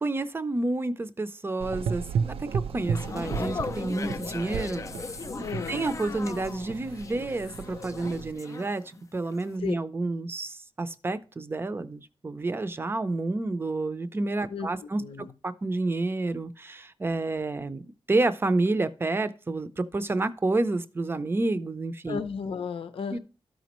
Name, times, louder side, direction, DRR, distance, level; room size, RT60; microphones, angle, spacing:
voice 1, 0.0-4.8 5.7-8.8 9.1-15.0 15.4-22.2 23.1-23.2, right 2 dB, 25° right, 0.5 m, -29 dB
Gurgling / Engine, 1.6-8.3, right 6 dB, 85° right, 0.4 m, -34 dB
sound 1, 2.8-9.0 9.3-9.6, left 4 dB, 35° left, 0.3 m, -38 dB
voice 2, 5.4-5.9 9.6-9.8 14.5-14.7 15.0-15.3 22.1-23.2, left 6 dB, 75° left, 0.6 m, -34 dB
13.0 x 5.1 x 3.0 m
wide cardioid pair, 140°, 9 cm